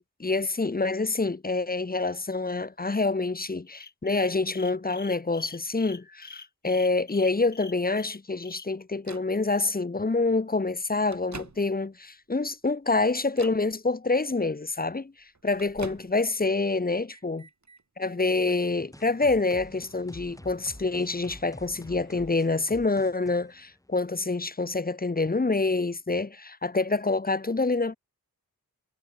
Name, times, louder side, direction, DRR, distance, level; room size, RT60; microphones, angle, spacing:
voice 1, 0.2-15.1 15.4-17.4 18.0-28.0, left 3 dB, 25° left, 0.9 m, -27 dB
sound 1, 3.7-8.7, left 5 dB, 50° left, 1.7 m, -45 dB
Microwave oven, 9.0-9.4 10.3-10.4 10.9-12.0 12.5-12.8 13.3-13.7 14.9-16.4 16.8-17.8 18.4-22.6, right 4 dB, 50° right, 5.6 m, -49 dB
sound 2, 18.9-24.4, left 1 dB, 10° left, 1.8 m, -48 dB
wide cardioid pair, 95°, 35 cm